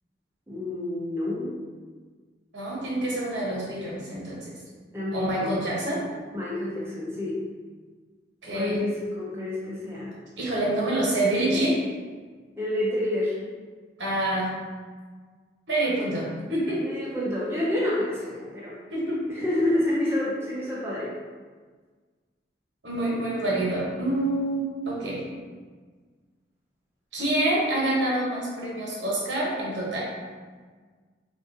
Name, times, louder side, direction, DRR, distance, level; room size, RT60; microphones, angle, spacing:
voice 1, 0.5-1.6 4.9-5.6 6.3-7.4 8.5-10.2 12.6-13.4 16.8-18.8 19.3-21.1, left 1 dB, 15° right, -7 dB, 0.4 m, -28 dB
voice 2, 2.5-4.5 5.1-6.0 8.4-8.8 10.4-11.8 14.0-14.5 15.7-17.0 18.9-19.2 22.8-25.2 27.1-30.1, right 1 dB, 80° right, -5 dB, 1.0 m, -27 dB
3.6 x 2.5 x 2.6 m, 1.5 s
head